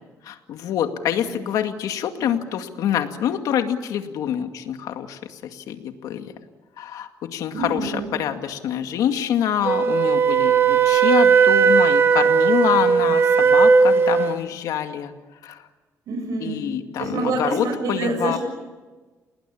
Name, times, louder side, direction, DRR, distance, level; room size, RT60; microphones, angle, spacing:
voice 1, 0.2-6.3 6.8-15.1 15.4-15.6 16.4-18.4, left 9 dB, 90° left, 6 dB, 2.2 m, -26 dB
voice 2, 7.5-8.1 16.1-16.7 17.0-18.4, right 3 dB, 75° right, 2 dB, 7.5 m, -26 dB
Wind instrument woodwind instrument, 9.6-14.4, right 6 dB, 40° right, 1.4 m, -17 dB
30.0 x 20.0 x 8.8 m, 1.3 s
cardioid pair, 130°, 6 cm